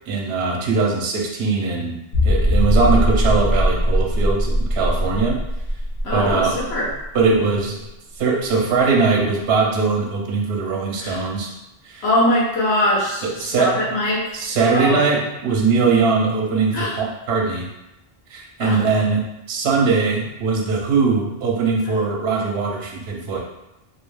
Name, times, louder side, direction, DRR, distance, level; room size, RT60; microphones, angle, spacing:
voice 1, 0.1-5.4 6.1-6.6 7.1-7.9 8.2-11.5 11.8-12.0 13.2-13.9 14.3-17.7 18.3-23.4, right 4 dB, 75° right, 0 dB, 0.8 m, -21 dB
sound 1, 2.1-7.6 7.9-8.0 8.5-8.6, equal, 55° left, 0.6 m, -20 dB
voice 2, 6.0-6.9 11.0-11.3 12.0-14.4 14.7-15.2 16.7-17.0 18.6-18.8, left 1 dB, 80° left, -5 dB, 0.9 m, -22 dB
2.4 x 2.1 x 3.1 m, 0.91 s
omnidirectional pair, 1.1 m